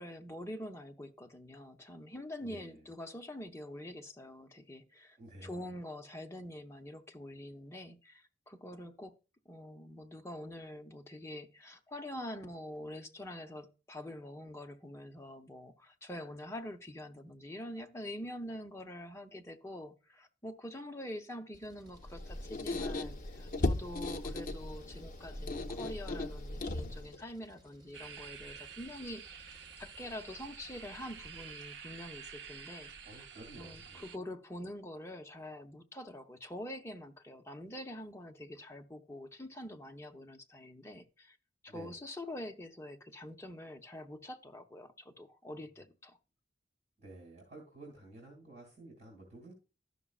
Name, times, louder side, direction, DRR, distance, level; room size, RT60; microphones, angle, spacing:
voice 1, 0.0-9.2 9.5-33.2 33.6-41.4 41.6-46.2, left 1 dB, 15° left, 0.8 m, -45 dB
voice 2, 2.4-2.8 5.2-5.5 33.0-34.1 41.7-41.9 47.0-49.5, right 2 dB, 40° right, 2.5 m, -52 dB
Engine, 21.5-31.6, equal, 25° right, 5.0 m, -62 dB
Squeak, 22.0-27.2, left 2 dB, 50° left, 0.6 m, -37 dB
sound 1, 27.9-34.2, right 6 dB, 75° right, 0.6 m, -49 dB
12.5 x 6.1 x 2.4 m
head